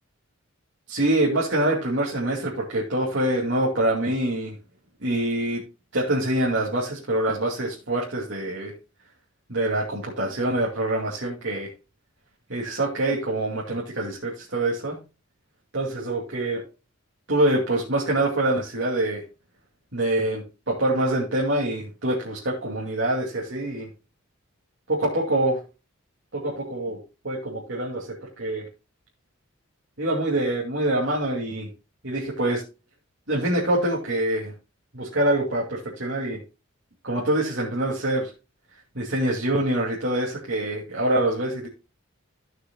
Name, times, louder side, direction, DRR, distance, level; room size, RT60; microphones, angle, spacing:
voice 1, 0.9-4.5 5.0-5.6 5.9-8.7 9.5-11.7 12.5-15.0 15.7-16.6 17.3-19.2 19.9-23.9 24.9-25.6 26.3-27.0 27.2-28.6 30.0-31.7 32.0-32.6 33.3-34.5 34.9-36.4 37.0-38.3 38.9-41.7, right 1 dB, 60° right, -4 dB, 2.7 m, -25 dB
15.5 x 6.6 x 2.3 m, 0.29 s
head